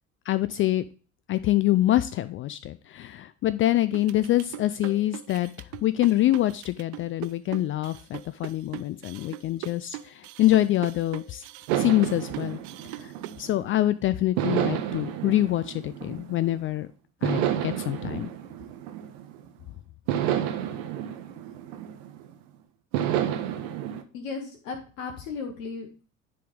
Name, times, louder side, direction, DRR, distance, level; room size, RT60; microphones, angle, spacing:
voice 1, 0.3-0.8 1.3-5.5 5.8-11.4 11.7-12.6 13.0-13.1 13.4-16.9 17.2-18.3, left 14 dB, 35° left, 14 dB, 0.4 m, -25 dB
sound 1, 3.9-13.4, right 16 dB, 45° right, 0.5 m, -40 dB
sound 2, 11.7-13.8 14.4-16.6 17.2-19.5 20.1-22.3 22.9-24.0, right 10 dB, 65° right, 0.9 m, -30 dB
voice 2, 24.1-26.1, left 4 dB, 70° left, 3 dB, 1.3 m, -36 dB
10.0 x 3.6 x 3.7 m, 0.38 s
figure-of-eight pair, 60°, 41 cm